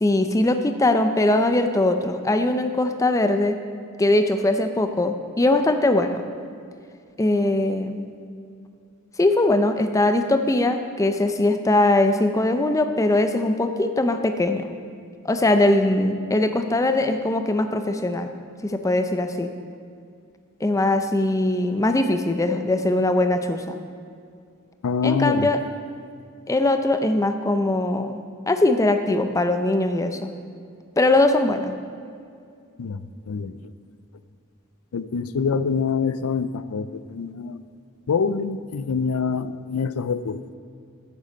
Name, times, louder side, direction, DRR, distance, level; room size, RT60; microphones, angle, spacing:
voice 1, 0.0-3.6 4.0-6.2 7.2-8.1 9.2-14.7 15.2-18.3 18.6-19.5 20.6-23.8 25.0-25.6 26.5-30.3 31.0-31.8, left 2 dB, 15° left, 7 dB, 0.5 m, -21 dB
voice 2, 24.8-25.5 32.8-33.0 33.3-33.6 34.9-37.6 38.1-40.4, left 5 dB, 85° left, 13 dB, 0.4 m, -25 dB
9.6 x 8.8 x 5.2 m, 2.3 s
head